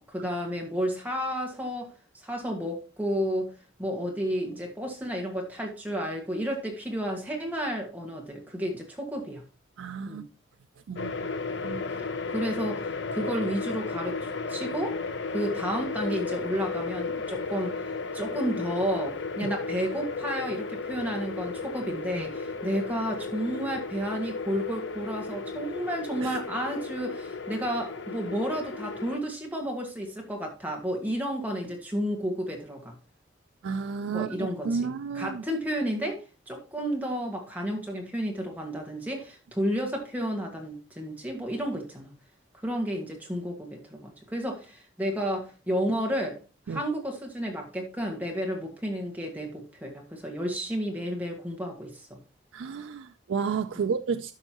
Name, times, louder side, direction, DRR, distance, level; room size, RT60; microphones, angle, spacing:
voice 1, 0.0-1.9 2.2-3.5 3.8-9.4 10.1-10.2 12.3-15.0 15.3-17.8 18.1-32.9 34.1-42.1 42.6-46.4 46.7-52.2 53.7-53.9, equal, 10° right, 1.7 m, -32 dB
voice 2, 9.8-10.3 10.9-11.3 11.6-11.8 19.4-19.5 26.2-26.4 33.6-34.3 34.6-35.4 46.7-46.8 52.5-54.3, right 5 dB, 80° right, 0.4 m, -31 dB
sound 1, 11.0-29.2, left 4 dB, 65° left, 0.6 m, -34 dB
13.0 x 5.4 x 2.9 m
head